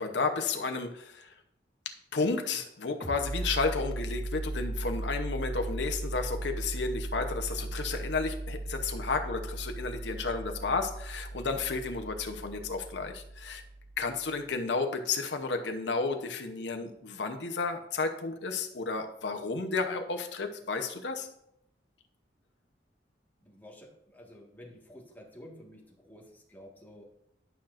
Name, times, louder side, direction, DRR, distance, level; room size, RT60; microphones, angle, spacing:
voice 1, 0.0-1.3 2.1-13.6 14.0-21.3, left 4 dB, 75° left, 4 dB, 0.8 m, -32 dB
sound 1, 3.0-14.3, right 2 dB, 50° right, 2.4 m, -37 dB
voice 2, 23.4-27.0, equal, 10° left, -3 dB, 1.6 m, -51 dB
11.0 x 5.7 x 2.5 m, 0.76 s
head